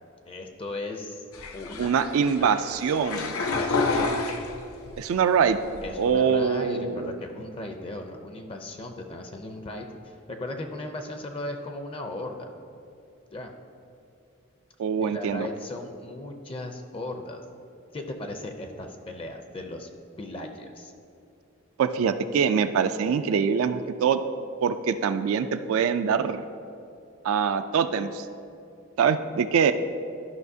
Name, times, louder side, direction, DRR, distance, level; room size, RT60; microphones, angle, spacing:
voice 1, 0.3-1.3 1.5-1.9 2.4-2.5 3.6-4.2 5.8-12.5 13.3-13.5 15.0-17.4 17.9-19.9 20.2-20.9, left 1 dB, 25° left, 5 dB, 0.5 m, -37 dB
sound 1, 1.3-5.0 5.4-6.1, left 3 dB, 85° left, 0.6 m, -29 dB
voice 2, 1.8-3.5 5.0-5.6 6.0-7.1 14.8-15.5 21.8-24.2 24.6-26.4 27.2-28.3 29.0-29.7, right 6 dB, 75° right, 9 dB, 0.3 m, -24 dB
12.5 x 5.6 x 2.7 m, 2.5 s
head